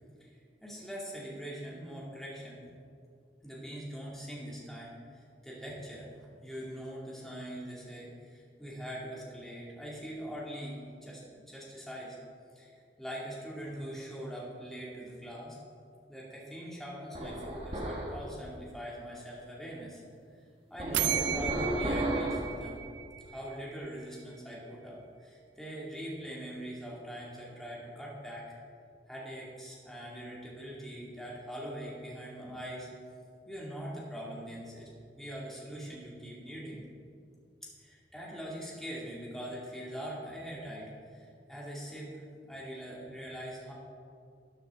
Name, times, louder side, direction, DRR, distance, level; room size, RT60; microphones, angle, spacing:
voice 1, 0.6-2.7 3.4-6.1 6.4-12.2 12.5-15.6 16.1-20.0 20.7-22.8 23.3-28.4 29.1-32.9 33.5-34.9 35.2-36.9 37.6-43.7, equal, ahead, -6 dB, 2.3 m, -42 dB
sound 1, 17.1-18.2 20.8-22.5, right 1 dB, 35° right, 1.4 m, -33 dB
sound 2, 20.9-23.7, right 12 dB, 75° right, 0.4 m, -34 dB
13.0 x 9.3 x 3.7 m, 2.3 s
head